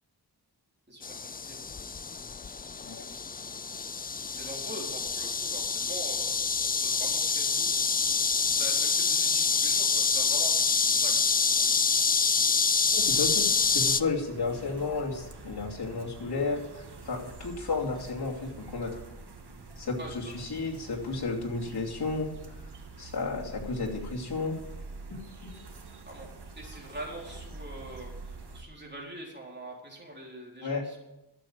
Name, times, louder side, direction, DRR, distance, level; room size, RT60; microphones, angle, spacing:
voice 1, 0.9-1.6 4.3-7.8 8.4-11.1 11.6-11.7 20.0-20.5 26.1-28.1 28.5-31.1, right 1 dB, 25° right, -2 dB, 3.9 m, -44 dB
sound 1, 1.0-14.0, left 5 dB, 25° left, 0.3 m, -27 dB
voice 2, 12.9-13.5 13.7-19.0 19.8-22.3 23.0-24.5 25.1-25.5 30.6-30.8, left 3 dB, 70° left, -2 dB, 2.8 m, -32 dB
sound 2, 13.0-28.6, right 3 dB, 75° right, 1.8 m, -46 dB
12.0 x 7.5 x 8.7 m, 0.95 s
wide cardioid pair, 95°, 40 cm